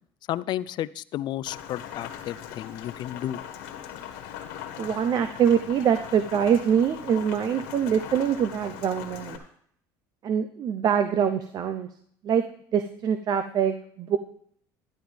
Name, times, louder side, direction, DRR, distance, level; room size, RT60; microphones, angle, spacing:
voice 1, 0.3-3.4, left 12 dB, 55° left, 18 dB, 0.5 m, -32 dB
Rain, 1.5-9.4, left 10 dB, 85° left, 1.6 m, -40 dB
voice 2, 4.8-9.4 10.2-11.9 12.2-12.4 12.7-14.2, right 8 dB, 50° right, 9 dB, 0.8 m, -24 dB
11.5 x 11.5 x 3.4 m, 0.64 s
supercardioid pair, 105°, 9 cm